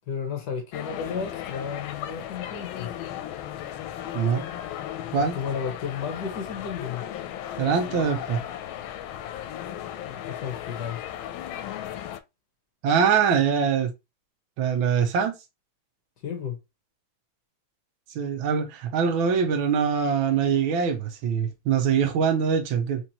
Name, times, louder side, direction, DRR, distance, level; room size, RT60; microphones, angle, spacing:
voice 1, 0.1-2.9 5.3-7.1 10.0-11.0 16.2-16.6, left 6 dB, 60° left, 1.6 m, -33 dB
sound 1, 0.7-12.2, left 11 dB, 90° left, 1.4 m, -36 dB
voice 2, 7.6-8.4 12.8-13.9 14.6-15.3 18.1-23.0, right 6 dB, 85° right, 1.6 m, -23 dB
4.6 x 3.4 x 2.8 m
omnidirectional pair, 2.2 m